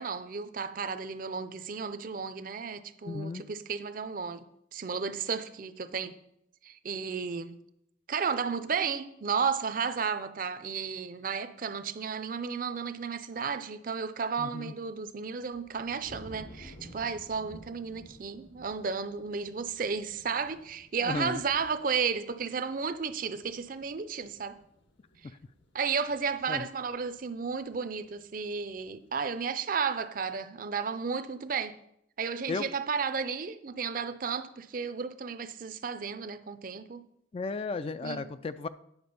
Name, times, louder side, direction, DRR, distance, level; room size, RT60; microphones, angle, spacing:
voice 1, 0.0-4.4 4.7-6.2 6.6-7.6 8.1-24.6 25.7-31.8 32.2-37.0 38.0-38.2, right 5 dB, 45° right, 0.5 m, -33 dB
voice 2, 3.0-3.4 14.4-14.7 21.0-21.4 26.5-26.7 32.5-32.7 37.3-38.7, left 4 dB, 30° left, 0.3 m, -34 dB
sound 1, 14.9-29.2, equal, 70° left, 1.5 m, -55 dB
9.6 x 5.9 x 5.3 m
head